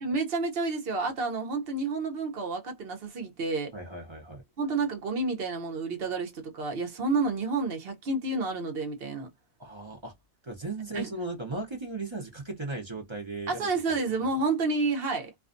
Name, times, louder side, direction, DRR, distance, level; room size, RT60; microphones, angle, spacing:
voice 1, 0.0-3.7 4.6-9.3 10.9-11.1 13.5-15.4, right 3 dB, 50° right, 0.9 m, -30 dB
voice 2, 3.7-4.4 9.6-10.1 10.4-13.7 14.2-14.3, right 3 dB, 25° right, 0.7 m, -36 dB
2.5 x 2.3 x 2.5 m
omnidirectional pair, 1.4 m